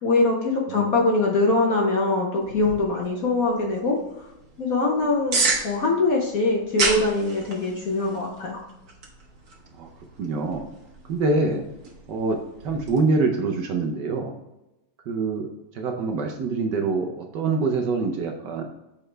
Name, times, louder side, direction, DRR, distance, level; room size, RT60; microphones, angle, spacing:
voice 1, 0.0-4.0 4.6-8.6, left 3 dB, 55° left, -1 dB, 1.1 m, -23 dB
sound 1, 2.4-13.0, right 3 dB, 50° right, 1.6 m, -33 dB
voice 2, 10.2-10.6 11.1-11.6 12.1-12.4 12.6-14.3 15.1-15.5 15.7-18.6, right 3 dB, 65° right, 3 dB, 1.2 m, -25 dB
7.0 x 4.3 x 3.3 m, 0.95 s
omnidirectional pair, 2.3 m